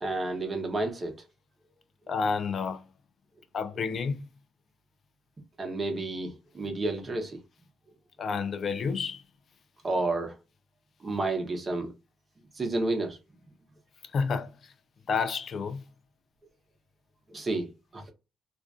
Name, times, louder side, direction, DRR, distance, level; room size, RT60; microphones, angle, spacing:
voice 1, 0.0-1.1 5.6-7.4 9.8-10.3 11.0-11.9 12.6-13.2 17.3-18.0, right 2 dB, 30° right, 0.8 m, -30 dB
voice 2, 2.1-2.8 3.5-4.2 8.2-9.2 14.1-14.5 15.1-15.8, left 5 dB, 55° left, 0.3 m, -29 dB
2.4 x 2.1 x 2.4 m
cardioid pair, 90°, 0 cm